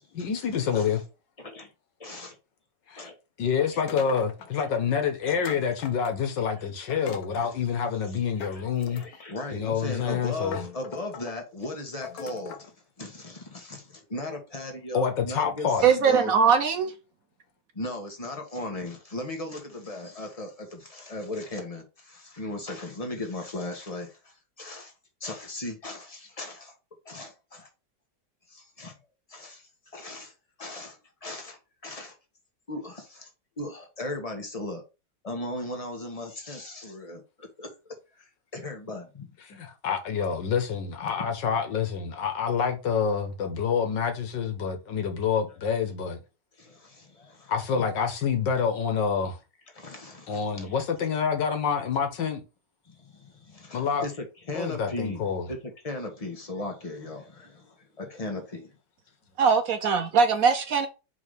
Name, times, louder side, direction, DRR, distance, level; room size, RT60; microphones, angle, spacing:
voice 1, 0.1-1.0 2.9-3.1 3.4-9.0 9.5-10.6 14.9-15.9 39.4-46.2 47.5-49.4 50.3-52.4 53.7-54.1 54.5-55.5, left 6 dB, 85° left, 1.8 m, -27 dB
voice 2, 1.4-1.7 2.0-2.3 3.0-3.1 3.7-3.8 5.2-5.3 6.4-6.5 8.5-12.7 13.0-16.3 17.7-24.1 24.6-24.9 25.2-26.7 27.0-27.7 28.5-28.9 29.3-29.6 29.9-30.3 30.6-32.1 32.7-33.3 33.6-34.8 35.2-37.7 38.2-38.3 38.5-39.3 46.6-47.5 49.7-50.7 52.9-57.7 58.0-58.7, left 2 dB, 20° left, 1.3 m, -37 dB
sound 1, 3.9-4.7 5.4-6.4 6.9-7.6 8.4-9.3 10.0-10.1 10.5-11.3 12.0-12.7, left 7 dB, 65° left, 1.2 m, -41 dB
voice 3, 15.8-16.9 59.4-60.9, right 6 dB, 65° right, 1.0 m, -21 dB
4.7 x 4.0 x 5.0 m
omnidirectional pair, 1.9 m